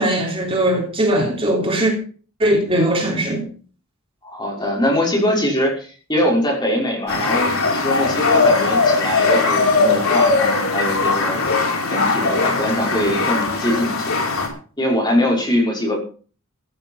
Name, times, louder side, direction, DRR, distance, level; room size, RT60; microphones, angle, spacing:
voice 1, 0.0-1.9 2.4-3.4, right 1 dB, 25° right, 3.7 m, -19 dB
voice 2, 4.2-11.4 11.9-14.1 14.8-16.0, left 1 dB, 20° left, 5.7 m, -22 dB
sound 1, 7.1-14.5, left 3 dB, 70° left, 5.1 m, -19 dB
15.5 x 10.5 x 5.6 m
head